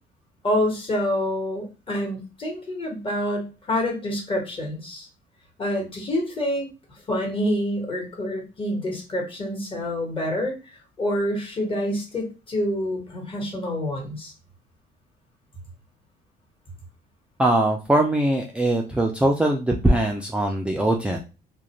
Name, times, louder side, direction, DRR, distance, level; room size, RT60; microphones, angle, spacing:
voice 1, 0.4-5.1 5.6-6.7 7.1-14.3, left 1 dB, 30° left, 1 dB, 1.2 m, -27 dB
voice 2, 17.4-21.2, right 1 dB, 5° right, 0 dB, 0.3 m, -21 dB
2.4 x 2.2 x 2.9 m, 0.30 s
cardioid pair, 110°, 17 cm